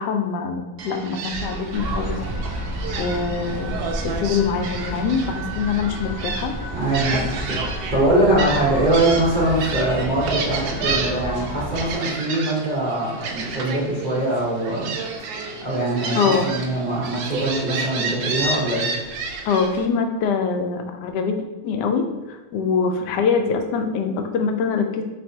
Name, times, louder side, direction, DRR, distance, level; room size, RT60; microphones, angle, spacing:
voice 1, 0.0-2.2 3.0-3.8 4.0-6.5 8.3-8.4 16.2-16.5 19.4-25.0, left 5 dB, 70° left, 5 dB, 1.0 m, -24 dB
Gull seagull, 0.8-19.9, right 4 dB, 80° right, 0.8 m, -31 dB
sound 1, 1.7-11.9, equal, 10° right, 1.1 m, -31 dB
voice 2, 6.7-14.9 15.6-18.9, right 1 dB, 40° right, -6 dB, 0.6 m, -22 dB
4.3 x 3.9 x 2.8 m, 1.2 s
omnidirectional pair, 2.2 m